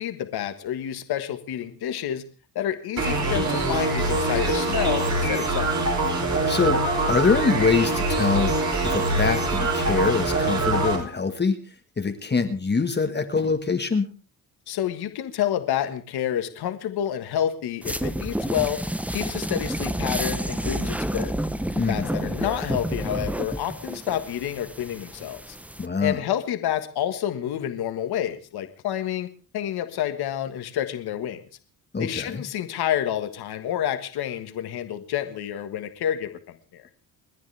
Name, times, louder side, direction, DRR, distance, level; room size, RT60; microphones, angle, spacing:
voice 1, 0.0-2.2 2.5-5.8 14.7-18.8 19.1-21.3 21.9-25.5 26.0-29.3 29.5-31.4 32.0-36.9, left 10 dB, 80° left, 8 dB, 1.6 m, -29 dB
sound 1, 3.0-11.0, right 2 dB, 45° right, 5.5 m, -24 dB
voice 2, 6.5-6.8 7.1-8.5 8.8-11.6 12.0-14.1 21.8-22.3 25.8-26.2 31.9-32.4, left 4 dB, 25° left, 6 dB, 1.6 m, -24 dB
sound 2, 17.8-25.9, right 1 dB, 5° right, 0.9 m, -30 dB
29.5 x 10.5 x 3.4 m, 0.37 s
cardioid pair, 90°, 37 cm